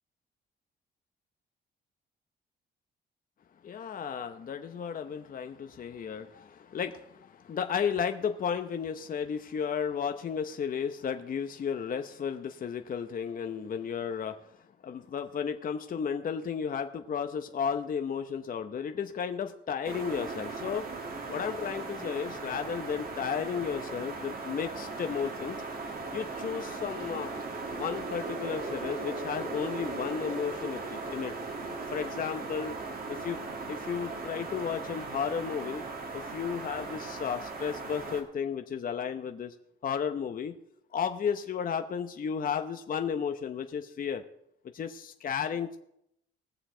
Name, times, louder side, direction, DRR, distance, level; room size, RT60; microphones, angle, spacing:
voice 1, 3.6-14.4 14.8-20.9 21.3-25.6 26.1-27.3 27.7-31.3 31.9-32.7 33.1-33.4 33.7-35.8 36.1-39.5 39.8-40.6 40.9-44.2 44.7-45.8, left 7 dB, 45° left, 6 dB, 0.8 m, -33 dB
sound 1, 19.8-38.2, right 3 dB, 45° right, 2.1 m, -38 dB
20.0 x 7.0 x 3.8 m, 0.77 s
cardioid pair, 90°, 20 cm